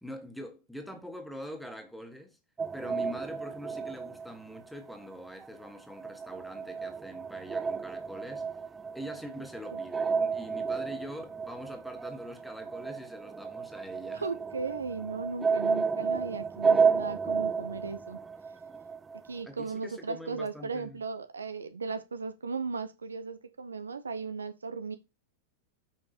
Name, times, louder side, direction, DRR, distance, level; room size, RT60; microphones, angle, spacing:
voice 1, 0.0-2.4 2.7-8.5 8.9-14.2 19.4-21.0, equal, ahead, 1.6 m, -43 dB
sound 1, 2.6-5.2 5.4-19.3, right 5 dB, 15° right, 0.3 m, -32 dB
voice 2, 14.1-18.2 19.1-25.0, right 4 dB, 75° right, 0.7 m, -36 dB
6.6 x 5.2 x 4.3 m
figure-of-eight pair, 90°, 0 cm